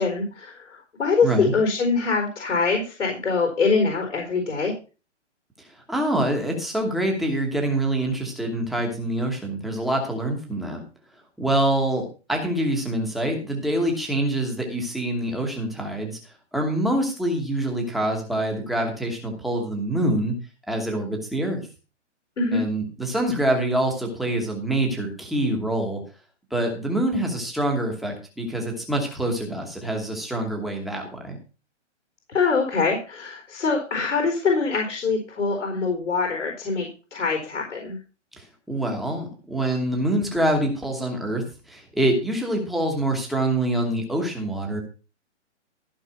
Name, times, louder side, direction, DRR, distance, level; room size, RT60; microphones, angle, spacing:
voice 1, 0.0-4.7 22.4-22.6 32.3-38.0, left 4 dB, 90° left, 2 dB, 4.3 m, -24 dB
voice 2, 1.2-1.5 5.9-10.8 11.4-16.2 16.5-20.3 20.7-21.6 22.5-26.0 26.5-31.4 38.7-41.4 41.7-44.8, right 1 dB, ahead, 1 dB, 1.2 m, -25 dB
14.5 x 5.7 x 5.8 m, 0.33 s
hypercardioid pair, 170°, 36 cm